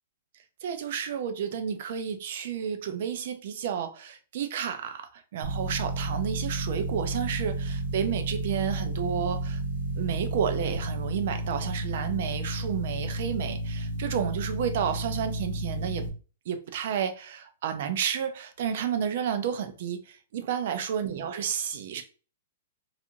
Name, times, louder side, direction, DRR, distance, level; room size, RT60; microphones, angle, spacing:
voice 1, 0.6-9.6 10.0-16.0 16.5-22.0, right 8 dB, 50° right, 0.4 m, -31 dB
sound 1, 5.4-16.1, right 1 dB, 80° right, 0.8 m, -32 dB
2.5 x 2.4 x 2.8 m
hypercardioid pair, 170°, 0 cm